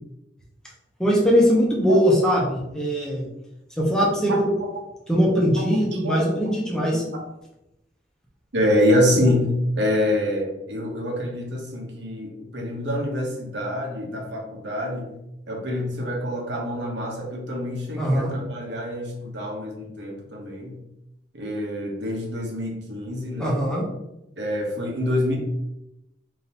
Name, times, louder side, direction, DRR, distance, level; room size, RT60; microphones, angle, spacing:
voice 1, 1.0-3.2 3.8-4.5 5.1-7.0 18.0-18.3 23.4-23.8, equal, 5° left, -4 dB, 1.0 m, -21 dB
voice 2, 1.9-2.3 5.6-5.7 6.0-6.3 6.8-7.0 8.5-9.5 9.8-15.1 15.5-20.8 21.3-23.6 24.4-25.4, left 1 dB, 75° right, 0 dB, 1.0 m, -26 dB
3.8 x 2.8 x 4.1 m, 0.89 s
head